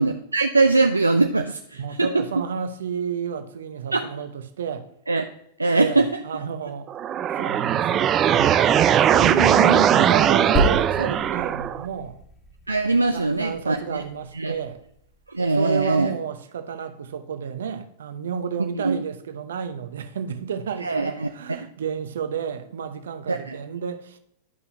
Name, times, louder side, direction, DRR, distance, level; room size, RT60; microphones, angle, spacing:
voice 1, 0.0-2.2 3.9-4.1 5.1-5.2 5.6-6.2 9.1-9.9 12.7-14.0 14.4-14.5 15.3-16.1 18.7-19.0 20.8-21.3 23.3-23.6, right 3 dB, 85° right, 0.4 m, -22 dB
voice 2, 1.7-4.9 5.7-6.9 7.4-8.9 9.9-12.2 13.1-14.8 15.5-24.2, right 7 dB, 70° right, 0.9 m, -31 dB
sound 1, 6.9-11.9, right 9 dB, 30° right, 0.4 m, -19 dB
sound 2, 10.5-14.1 14.8-14.9, equal, 20° left, 2.0 m, -29 dB
11.0 x 5.5 x 2.7 m
figure-of-eight pair, 95°, 0 cm